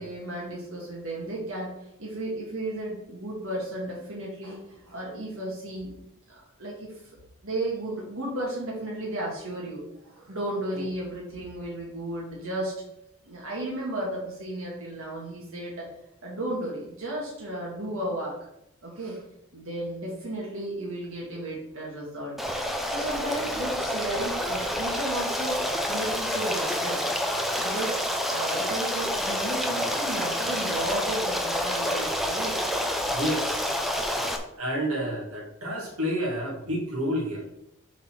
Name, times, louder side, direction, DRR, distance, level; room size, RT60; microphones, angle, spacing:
voice 1, 0.0-1.7 2.0-5.9 6.3-7.0 7.4-12.7 13.3-15.9 16.2-18.5 18.8-19.2 19.5-22.4 22.9-27.0 27.6-27.9 28.3-32.6, right 1 dB, 70° right, -4 dB, 2.0 m, -34 dB
Stream, 22.4-34.4, equal, ahead, 0.6 m, -28 dB
voice 2, 33.0-33.8 34.6-37.4, equal, 90° right, -1 dB, 2.4 m, -30 dB
7.3 x 4.2 x 6.1 m, 0.83 s
head